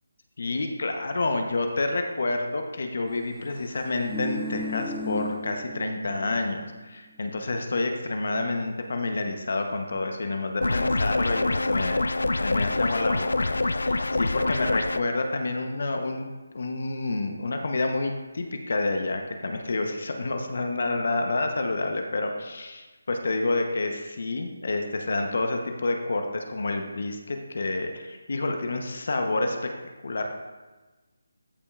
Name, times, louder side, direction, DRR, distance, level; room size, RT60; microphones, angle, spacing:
voice 1, 0.4-12.0 12.4-29.6 30.0-30.3, left 2 dB, 60° left, 4 dB, 0.9 m, -29 dB
sound 1, 3.7-6.4 6.7-6.8, left 1 dB, ahead, 0.3 m, -35 dB
sound 2, 10.6-15.0, left 2 dB, 85° left, 0.4 m, -25 dB
13.5 x 5.2 x 2.5 m, 1.2 s
figure-of-eight pair, 165°, 0 cm